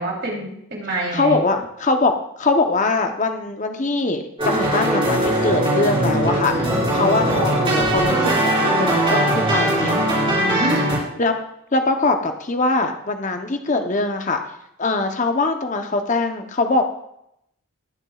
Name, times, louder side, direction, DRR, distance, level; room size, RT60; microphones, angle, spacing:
voice 1, 0.0-1.4 10.5-10.9, right 1 dB, 50° right, -2 dB, 3.4 m, -27 dB
voice 2, 1.1-6.5 6.9-10.0 11.2-11.4 11.7-14.4 14.8-16.8, left 3 dB, 35° left, 5 dB, 0.8 m, -22 dB
sound 1, 4.4-11.0, right 1 dB, 25° right, 4.4 m, -20 dB
20.0 x 7.1 x 2.4 m, 0.78 s
head